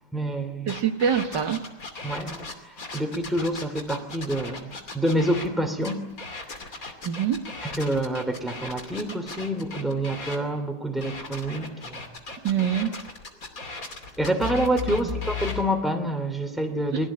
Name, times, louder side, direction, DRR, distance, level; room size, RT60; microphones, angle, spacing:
voice 1, 0.1-0.7 2.0-2.5 2.9-6.1 7.6-12.0 14.2-17.1, right 1 dB, ahead, 2.8 m, -27 dB
sound 1, 0.7-5.5 5.8-10.4 11.0-15.6, left 4 dB, 50° left, 3.2 m, -36 dB
voice 2, 0.7-1.6 7.0-7.5 12.4-12.9 14.9-15.1 16.9-17.0, right 8 dB, 85° right, 2.2 m, -25 dB
29.0 x 22.0 x 8.7 m
omnidirectional pair, 1.8 m